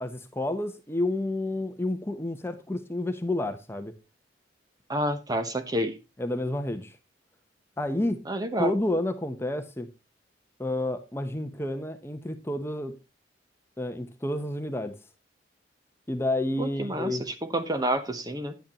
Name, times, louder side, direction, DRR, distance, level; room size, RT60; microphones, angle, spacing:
voice 1, 0.0-3.9 6.2-7.0 7.8-8.2 8.6-9.9 10.6-12.9 13.8-15.0 16.1-17.2, left 1 dB, 15° left, 0.8 m, -30 dB
voice 2, 4.9-6.0 8.3-8.7 16.6-18.5, right 1 dB, 20° right, 0.9 m, -29 dB
10.5 x 9.3 x 2.9 m
head